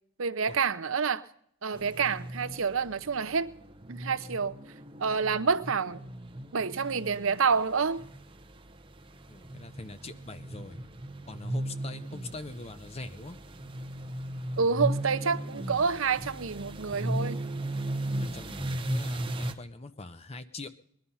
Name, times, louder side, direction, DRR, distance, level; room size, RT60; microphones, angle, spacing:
voice 1, 0.2-1.2 1.6-3.5 3.9-4.5 5.0-6.0 6.5-8.0 14.6-17.4, right 5 dB, 75° right, 0.7 m, -28 dB
sound 1, 1.7-19.5, right 1 dB, 25° right, 1.1 m, -37 dB
voice 2, 9.3-10.8 11.3-13.4 18.1-20.7, left 2 dB, 30° left, 0.7 m, -43 dB
20.5 x 11.5 x 5.6 m
head